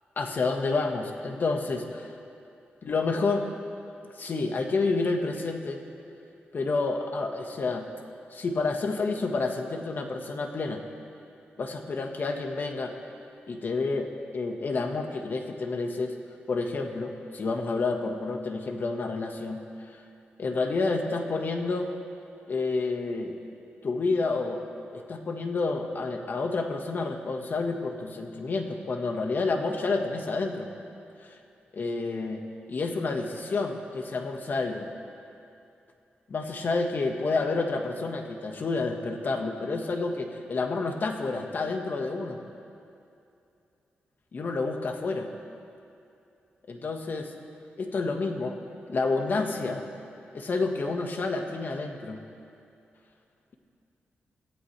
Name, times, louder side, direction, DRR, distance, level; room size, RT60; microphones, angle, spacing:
voice 1, 0.2-2.1 2.8-3.4 4.2-5.8 6.5-7.9 8.3-10.8 11.6-12.9 13.5-16.1 16.5-19.6 19.9-20.0 20.4-21.9 22.5-23.3 23.8-24.6 24.9-30.7 31.2-31.4 31.7-32.4 32.7-34.9 36.3-42.4 44.3-45.3 46.7-47.3 47.8-48.6 48.9-49.8 50.3-52.2, left 3 dB, 50° left, 4 dB, 1.5 m, -29 dB
23.0 x 15.0 x 3.3 m, 2.6 s
cardioid pair, 95°, 4 cm